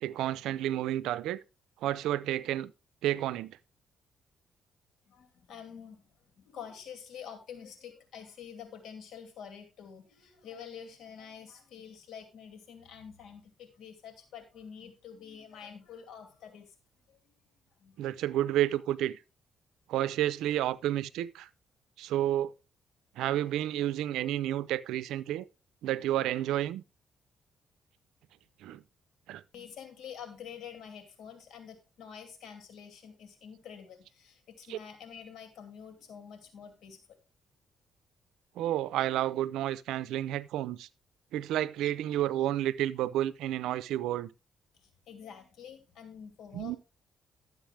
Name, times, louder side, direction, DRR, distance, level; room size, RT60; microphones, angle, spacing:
voice 1, 0.0-1.4 1.8-2.7 3.0-3.6 18.0-19.2 19.9-21.5 22.0-22.5 23.2-25.5 25.8-26.8 28.6-28.8 29.3-29.4 34.7-34.8 38.6-40.9 41.3-44.3 46.5-46.8, right 13 dB, 90° right, 0.5 m, -30 dB
voice 2, 5.1-6.1 6.4-16.7 17.1-17.2 17.8-18.1 29.5-37.0 44.8-46.8, left 7 dB, 75° left, 2.5 m, -47 dB
11.5 x 8.0 x 3.3 m
cardioid pair, 90°, 0 cm